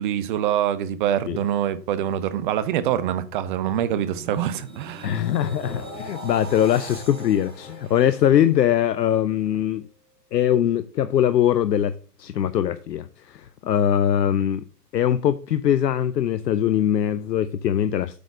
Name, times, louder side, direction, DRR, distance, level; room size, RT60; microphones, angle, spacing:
voice 1, 0.0-5.2, right 10 dB, 30° right, 0.6 m, -25 dB
sound 1, 3.3-9.2 9.6-9.9, right 2 dB, 90° right, 3.3 m, -41 dB
voice 2, 5.0-9.9 10.3-14.6 14.9-18.2, left 10 dB, 75° left, 0.6 m, -22 dB
8.2 x 4.1 x 4.8 m
figure-of-eight pair, 115°, 50 cm